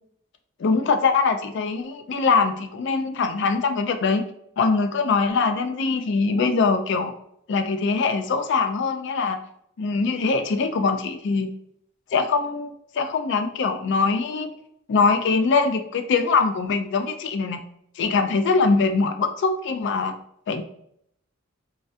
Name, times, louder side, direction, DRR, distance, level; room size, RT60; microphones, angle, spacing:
voice 1, 0.6-4.2 4.6-7.1 7.5-9.4 9.8-11.5 12.1-14.5 14.9-17.6 18.0-20.1 20.5-20.6, left 4 dB, 60° left, 8 dB, 0.4 m, -22 dB
3.1 x 2.3 x 2.6 m, 0.70 s
head